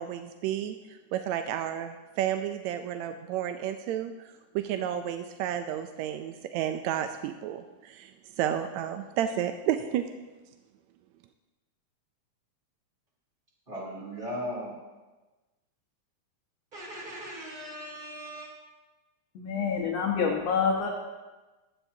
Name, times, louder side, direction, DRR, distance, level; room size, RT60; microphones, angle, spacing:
voice 1, 0.0-8.1 8.4-10.1, right 10 dB, 80° right, 8 dB, 1.7 m, -31 dB
voice 2, 13.7-14.7 16.7-18.5, equal, 15° right, -4 dB, 2.9 m, -38 dB
voice 3, 19.4-20.9, left 6 dB, 65° left, -1 dB, 2.1 m, -27 dB
15.0 x 12.5 x 2.8 m, 1.2 s
omnidirectional pair, 3.6 m